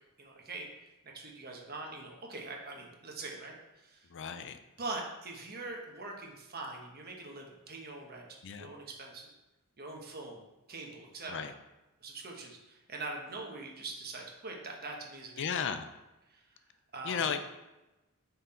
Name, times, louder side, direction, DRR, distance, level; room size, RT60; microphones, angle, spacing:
voice 1, 0.2-0.7 1.0-4.1 4.8-9.3 9.8-11.5 12.0-15.4 16.3-16.5 16.9-17.3, right 3 dB, 45° right, 1 dB, 1.1 m, -43 dB
voice 2, 4.1-4.6 8.4-8.7 11.3-11.5 15.4-15.9 17.0-17.4, left 7 dB, 60° left, 9 dB, 0.4 m, -34 dB
5.7 x 3.9 x 4.3 m, 1.0 s
head